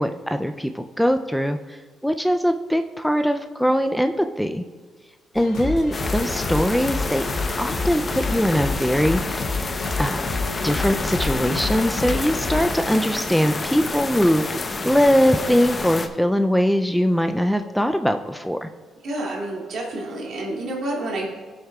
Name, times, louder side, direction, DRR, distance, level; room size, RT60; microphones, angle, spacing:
voice 1, 0.0-4.6 5.3-7.3 7.6-9.4 10.0-10.3 10.6-18.7, equal, ahead, 7 dB, 0.4 m, -21 dB
sound 1, 5.3-12.7, left 3 dB, 75° left, 2.2 m, -29 dB
sound 2, 5.9-16.1, left 3 dB, 30° left, 0.7 m, -29 dB
voice 2, 19.0-21.3, right 1 dB, 65° right, -2 dB, 2.2 m, -29 dB
18.5 x 6.4 x 2.3 m, 1.4 s
cardioid pair, 90°, 0 cm